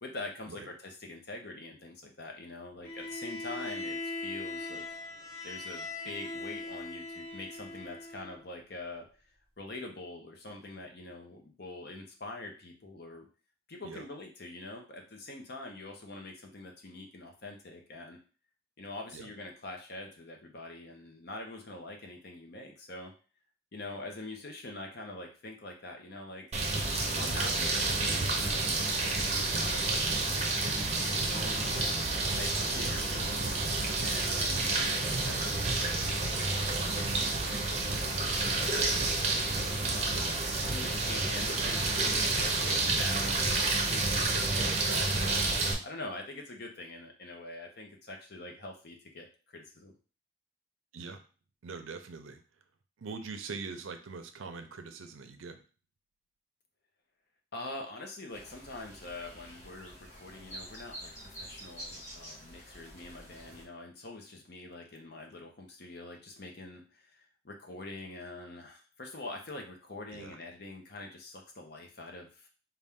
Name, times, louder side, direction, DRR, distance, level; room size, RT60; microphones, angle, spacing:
voice 1, 0.0-4.8 5.4-9.1 9.6-13.3 13.7-18.2 18.8-23.1 23.7-26.5 27.0-30.0 30.6-31.9 32.4-33.6 34.0-40.1 40.6-45.5 45.8-49.9 57.5-72.5, left 2 dB, 55° left, 2 dB, 0.8 m, -44 dB
Bowed string instrument, 2.8-8.4, left 2 dB, 10° left, 1.4 m, -40 dB
sound 1, 26.5-45.7, right 3 dB, 35° right, 0.6 m, -29 dB
voice 2, 51.6-52.4 53.0-55.6 70.1-70.4, right 4 dB, 85° right, 7 dB, 0.5 m, -43 dB
sound 2, 58.3-63.6, equal, 35° left, 1.6 m, -48 dB
4.1 x 2.3 x 3.5 m, 0.37 s
head